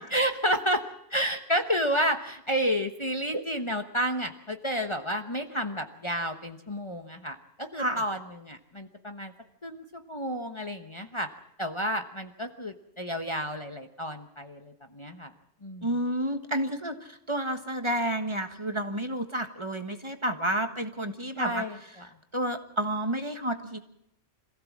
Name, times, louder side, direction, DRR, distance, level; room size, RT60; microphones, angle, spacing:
voice 1, 0.1-0.8 1.1-9.3 9.6-11.3 11.6-15.3 15.6-15.9 21.3-22.1, equal, 25° left, 5 dB, 1.1 m, -31 dB
voice 2, 15.8-21.6 22.3-23.8, right 1 dB, 25° right, 7 dB, 1.5 m, -30 dB
26.5 x 16.0 x 7.4 m, 0.78 s
omnidirectional pair, 1.2 m